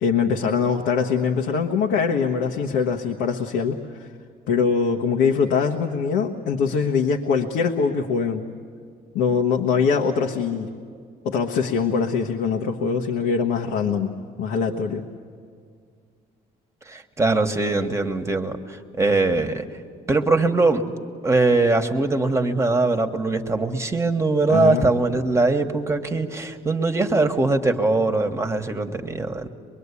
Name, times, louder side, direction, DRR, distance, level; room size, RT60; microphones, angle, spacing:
voice 1, 0.0-4.1 4.5-8.5 9.1-10.7 11.2-14.1 14.4-15.0 24.5-24.9, left 5 dB, 85° left, 1 dB, 1.2 m, -23 dB
voice 2, 16.9-19.6 20.1-20.8 21.2-29.5, right 3 dB, 15° right, 6 dB, 1.4 m, -21 dB
23.5 x 22.5 x 8.4 m, 2.1 s
cardioid pair, 110°, 17 cm